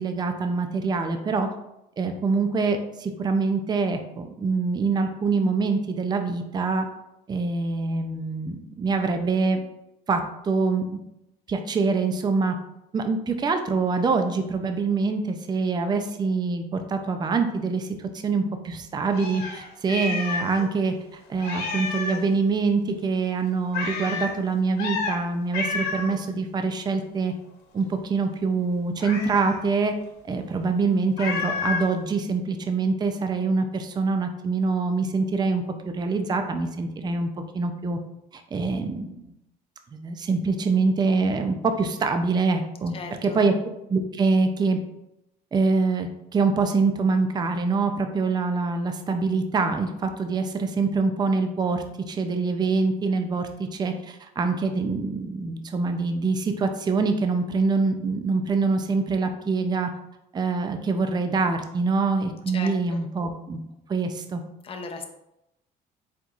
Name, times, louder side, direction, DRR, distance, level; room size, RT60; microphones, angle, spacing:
voice 1, 0.0-1.5 2.0-6.9 7.3-9.6 10.1-11.0 11.5-12.6 12.9-20.9 21.3-27.3 27.7-29.9 30.2-35.6 35.9-37.3 37.5-38.0 38.3-39.3 39.9-42.9 43.2-43.5 43.9-44.8 45.5-59.9 60.3-63.6 63.9-64.4, right 4 dB, 25° right, 6 dB, 0.4 m, -25 dB
Meow, 19.1-20.6 20.9-21.0 21.4-22.3 23.7-24.3 24.8-25.2 25.5-26.1 29.0-29.6 31.2-31.9, left 4 dB, 85° left, 1.5 m, -30 dB
voice 2, 42.9-43.4 62.5-63.0 64.6-65.0, left 4 dB, 35° left, 4 dB, 0.6 m, -36 dB
4.4 x 3.9 x 2.4 m, 0.85 s
cardioid pair, 110°, 17 cm